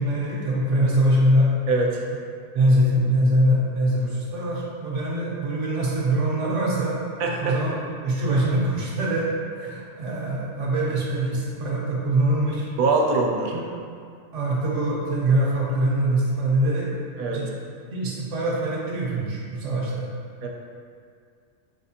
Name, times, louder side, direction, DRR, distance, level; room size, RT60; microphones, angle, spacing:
voice 1, 0.0-1.5 2.5-7.0 7.4-7.7 8.0-9.3 9.6-12.7 13.5-13.6 14.3-16.9 17.3-17.5 17.9-20.1, right 1 dB, 65° right, -4 dB, 1.0 m, -23 dB
voice 2, 1.7-2.0 7.2-7.6 12.8-13.5 17.2-17.4 20.4-20.5, right 3 dB, 85° right, 0 dB, 1.1 m, -23 dB
4.3 x 3.6 x 2.8 m, 2.2 s
omnidirectional pair, 1.5 m